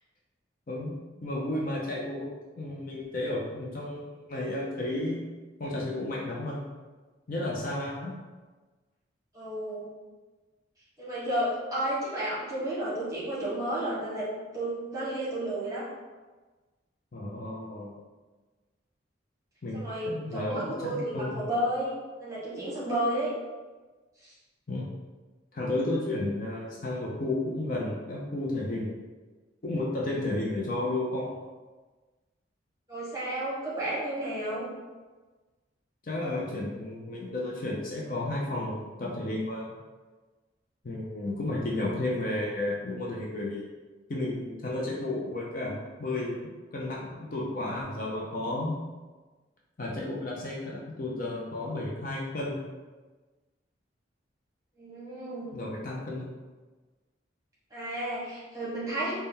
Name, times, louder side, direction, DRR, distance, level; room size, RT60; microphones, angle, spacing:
voice 1, 0.7-5.2 5.6-6.6 7.3-8.1 17.1-17.9 19.6-21.4 24.7-24.9 25.5-28.9 29.6-31.3 36.0-39.7 40.8-43.6 44.1-48.8 49.8-52.6 55.5-56.3, left 2 dB, 45° left, -3 dB, 0.5 m, -32 dB
voice 2, 9.3-9.9 11.0-15.9 19.7-23.3 24.2-24.3 32.9-34.7 54.8-55.6 57.7-59.1, right 1 dB, 15° right, -8 dB, 1.3 m, -32 dB
4.0 x 2.2 x 3.6 m, 1.3 s
head